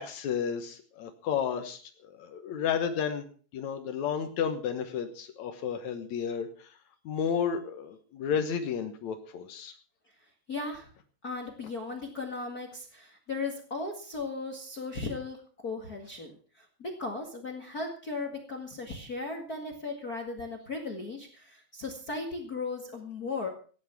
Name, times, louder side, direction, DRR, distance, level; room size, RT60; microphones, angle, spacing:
voice 1, 0.0-6.8 7.1-9.7, left 7 dB, 90° left, 7 dB, 1.6 m, -32 dB
voice 2, 10.5-10.9 11.2-23.5, left 3 dB, 50° left, 3 dB, 1.0 m, -37 dB
16.5 x 10.5 x 6.0 m, 0.42 s
omnidirectional pair, 5.2 m